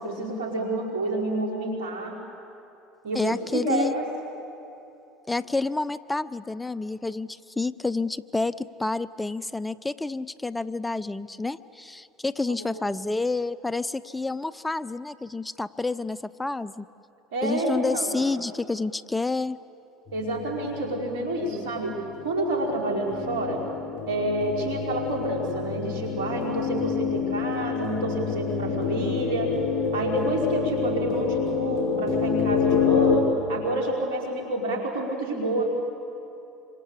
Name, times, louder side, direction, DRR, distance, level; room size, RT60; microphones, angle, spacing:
voice 1, 0.0-2.2 3.0-4.0 12.5-12.9 17.3-18.2 20.1-22.0 22.2-23.6 24.1-29.5 29.9-35.7, right 1 dB, 80° right, 0 dB, 5.6 m, -28 dB
voice 2, 3.1-3.9 5.3-16.8 17.4-19.6, left 3 dB, 10° left, 17 dB, 0.6 m, -29 dB
sound 1, 20.1-33.2, left 6 dB, 40° left, 5.2 m, -28 dB
27.0 x 25.5 x 8.5 m, 2.8 s
hypercardioid pair, 75°, 0 cm